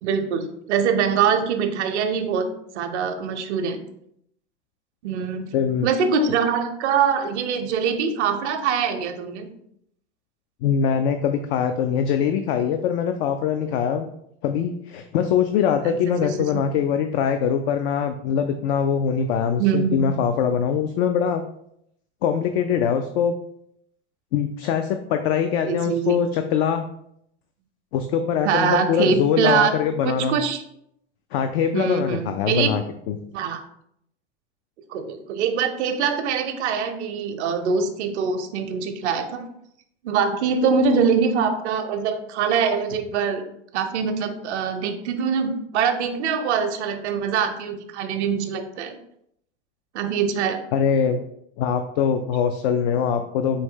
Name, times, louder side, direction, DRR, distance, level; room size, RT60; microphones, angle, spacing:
voice 1, 0.0-2.5 2.7-3.8 5.0-5.5 5.8-9.5 16.1-16.2 16.5-16.6 19.6-20.1 25.7-26.2 28.4-30.6 31.7-32.7 33.3-33.6 34.9-39.5 40.0-43.4 43.7-49.0 49.9-50.6, right 6 dB, 85° right, 7 dB, 0.6 m, -23 dB
voice 2, 5.5-5.9 10.6-14.1 14.4-21.4 22.2-23.3 24.3-26.9 27.9-30.4 31.3-33.2 50.7-51.2 51.6-53.6, left 7 dB, 60° left, 7 dB, 0.5 m, -23 dB
4.3 x 2.7 x 3.7 m, 0.73 s
supercardioid pair, 115°, 34 cm